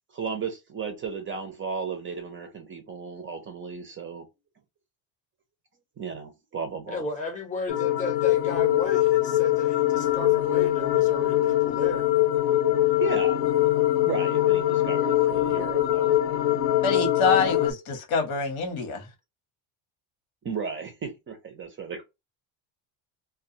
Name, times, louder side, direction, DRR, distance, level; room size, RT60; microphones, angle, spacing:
voice 1, 0.1-4.3 6.0-7.0 13.0-13.4 13.9-16.6 20.4-22.0, right 5 dB, 25° right, 0.4 m, -35 dB
voice 2, 6.9-12.1, left 3 dB, 15° left, 0.6 m, -34 dB
sound 1, 7.7-17.7, left 14 dB, 65° left, 0.6 m, -23 dB
voice 3, 16.8-19.1, left 4 dB, 85° left, 1.1 m, -25 dB
2.3 x 2.2 x 2.6 m
cardioid pair, 135°, 48 cm